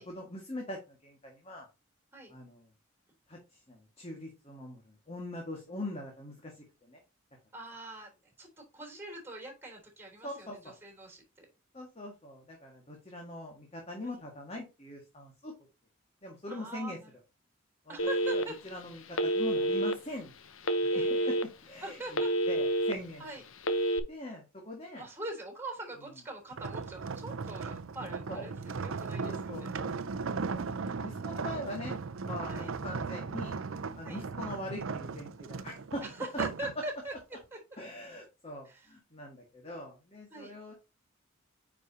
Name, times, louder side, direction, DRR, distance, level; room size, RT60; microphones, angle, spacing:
voice 1, 0.1-1.7 2.3-2.7 3.3-7.0 10.2-10.7 11.7-15.5 16.2-17.0 17.9-18.0 18.3-20.3 20.8-21.4 21.6-23.2 24.1-25.1 28.3-28.5 29.2-30.3 30.5-30.6 31.0-32.0 32.2-33.6 33.9-36.0 36.8-36.9 37.8-40.7, left 1 dB, 30° left, 0 dB, 1.8 m, -42 dB
voice 2, 7.5-8.1 8.4-11.5 14.0-14.2 16.5-17.1 17.9-18.6 20.9-21.3 21.8-22.3 23.2-23.4 25.0-29.7 32.5-32.7 34.0-34.2 36.0-37.1 37.5-37.6 38.7-38.9 40.3-40.5, right 2 dB, 10° right, 3 dB, 3.5 m, -43 dB
Telephone, 18.0-18.7 19.1-19.9 20.6-21.4 21.9-22.9 23.6-24.0, right 1 dB, 75° left, 0.9 m, -28 dB
sound 1, 26.5-36.7 37.2-37.4, right 4 dB, 75° right, 0.6 m, -37 dB
9.3 x 5.1 x 2.8 m, 0.28 s
head